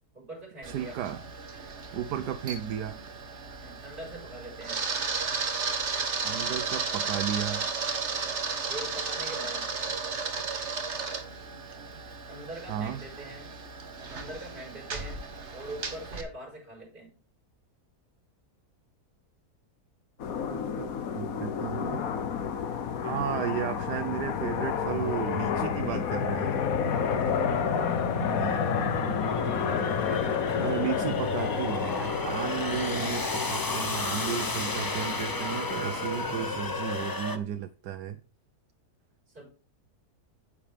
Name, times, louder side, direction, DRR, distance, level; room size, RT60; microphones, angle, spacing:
voice 1, 0.1-1.0 3.6-4.8 8.7-9.7 12.3-13.5 14.1-15.2 15.5-17.1 29.3-30.9 36.2-36.6 39.3-39.5, right 1 dB, 30° right, 5.4 m, -43 dB
Camera, 0.6-16.2, right 4 dB, 45° right, 1.6 m, -34 dB
voice 2, 0.6-1.2 1.9-3.0 6.2-7.6 12.7-13.0 20.5-22.1 23.0-26.6 28.2-28.7 30.6-38.2, right 10 dB, 85° right, 1.3 m, -34 dB
sound 1, 20.2-37.1, left 7 dB, 65° left, 1.3 m, -31 dB
sound 2, 26.8-37.4, left 3 dB, 20° left, 0.7 m, -33 dB
10.0 x 8.5 x 3.5 m
omnidirectional pair, 1.7 m